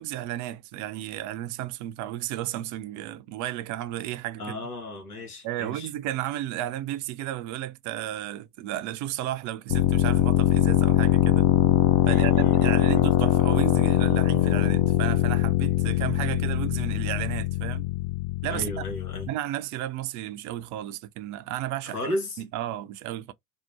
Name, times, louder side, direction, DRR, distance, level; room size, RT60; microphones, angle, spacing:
voice 1, 0.0-4.6 5.4-11.5 12.1-17.9 18.4-18.8 19.3-23.3, right 13 dB, 45° right, 0.5 m, -33 dB
voice 2, 4.4-5.9 12.0-13.0 18.5-19.3 21.8-22.4, left 1 dB, 85° left, 1.0 m, -34 dB
sound 1, 9.7-19.3, left 13 dB, 45° left, 0.5 m, -22 dB
2.7 x 2.1 x 2.8 m
figure-of-eight pair, 60°, 44 cm